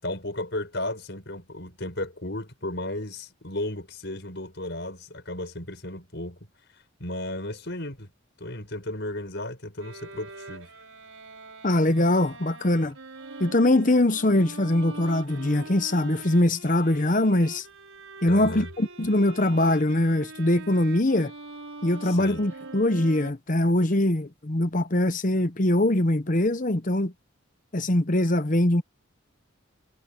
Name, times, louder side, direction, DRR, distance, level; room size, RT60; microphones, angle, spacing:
voice 1, 0.0-6.5 7.0-8.1 8.4-10.7 18.3-18.7 22.0-22.4, left 1 dB, 55° left, 6.6 m, -34 dB
Bowed string instrument, 9.8-23.3, right 3 dB, 85° right, 5.9 m, -43 dB
voice 2, 11.6-12.9 13.4-17.6 18.2-21.3 21.8-27.1 27.7-28.8, left 1 dB, 40° left, 1.0 m, -22 dB
head